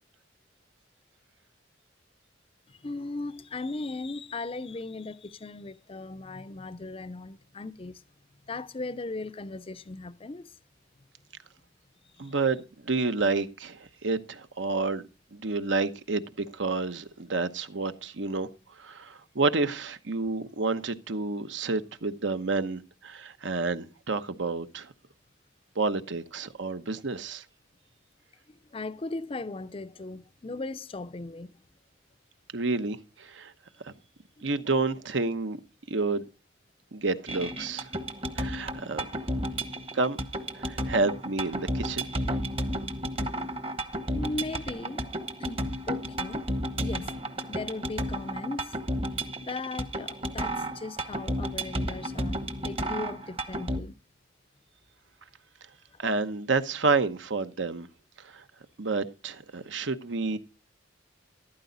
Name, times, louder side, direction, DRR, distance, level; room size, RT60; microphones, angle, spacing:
voice 1, 2.7-8.0 8.5-10.6 12.2-12.3 28.5-31.6 34.4-34.5 42.4-42.5 44.1-45.0 45.4-46.4 46.8-47.2 47.5-48.8 49.4-54.0, left 3 dB, 30° left, 0.5 m, -38 dB
voice 2, 12.2-15.0 15.3-18.5 18.8-24.9 25.8-27.4 32.5-33.5 33.8-33.9 34.4-35.6 35.9-36.2 36.9-37.9 38.4-39.0 39.9-40.2 40.5-42.1 56.0-57.9 58.2-58.4 58.8-60.4, right 3 dB, 70° right, 1.0 m, -29 dB
sound 1, 37.3-53.8, right 1 dB, 30° right, 1.1 m, -33 dB
14.0 x 12.0 x 4.0 m
head